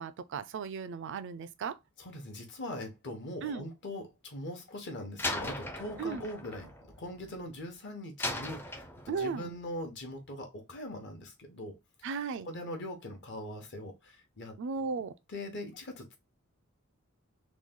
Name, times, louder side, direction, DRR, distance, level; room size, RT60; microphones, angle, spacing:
voice 1, 0.0-1.8 3.4-3.6 6.0-6.3 9.1-9.5 12.0-12.5 14.6-15.1, right 5 dB, 60° right, 0.4 m, -36 dB
voice 2, 2.0-6.7 7.0-11.8 12.4-14.6 15.3-16.2, left 1 dB, 55° left, 0.9 m, -41 dB
Slam, 5.2-7.6 8.2-9.4, left 1 dB, 10° left, 0.4 m, -38 dB
3.1 x 2.2 x 3.6 m
head